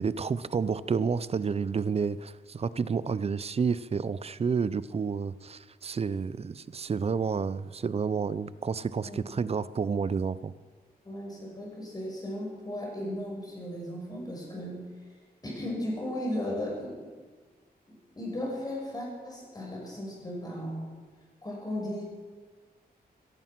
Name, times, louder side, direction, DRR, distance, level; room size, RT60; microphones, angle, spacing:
voice 1, 0.0-10.5, right 5 dB, 40° right, 17 dB, 0.5 m, -30 dB
voice 2, 9.0-9.4 11.0-14.9 15.4-17.1 17.9-20.8 21.4-22.0, left 1 dB, 25° left, -2 dB, 5.9 m, -36 dB
16.5 x 14.5 x 6.0 m, 1.5 s
wide cardioid pair, 140°, 16 cm